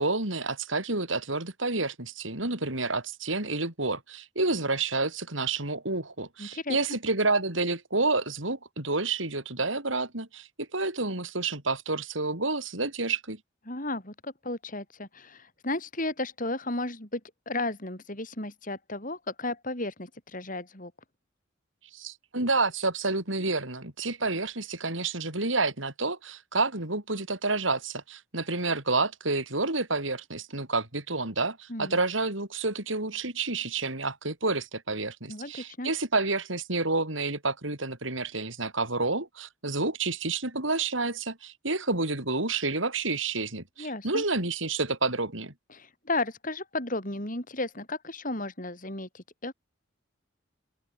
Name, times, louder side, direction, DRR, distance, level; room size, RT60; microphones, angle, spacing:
voice 1, 0.0-13.4 21.9-45.5, right 3 dB, 75° right, 6.1 m, -29 dB
voice 2, 6.4-7.0 13.6-17.2 17.4-20.9 31.7-32.0 35.3-35.9 43.8-44.2 45.7-49.5, left 2 dB, 40° left, 6.8 m, -34 dB
open air
head